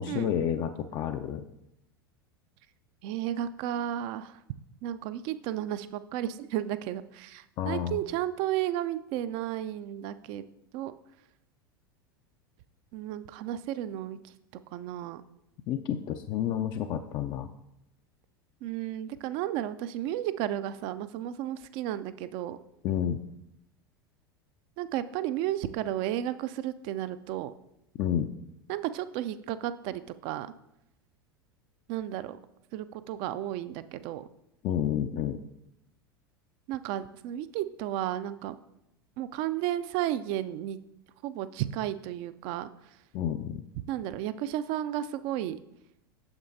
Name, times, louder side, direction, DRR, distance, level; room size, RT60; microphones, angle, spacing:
voice 1, 0.0-1.4 7.6-8.0 15.7-17.5 22.8-23.2 28.0-28.3 34.6-35.4 43.1-43.6, left 9 dB, 35° left, 7 dB, 0.3 m, -30 dB
voice 2, 3.0-4.4 4.8-10.4 10.7-10.9 12.9-14.2 14.7-15.2 18.6-22.6 24.8-27.5 28.7-30.5 31.9-32.4 32.7-34.2 36.7-38.6 39.2-40.8 41.2-42.7 43.9-45.6, right 12 dB, 45° right, 13 dB, 0.4 m, -33 dB
8.7 x 6.9 x 2.6 m, 0.82 s
figure-of-eight pair, 80°, 12 cm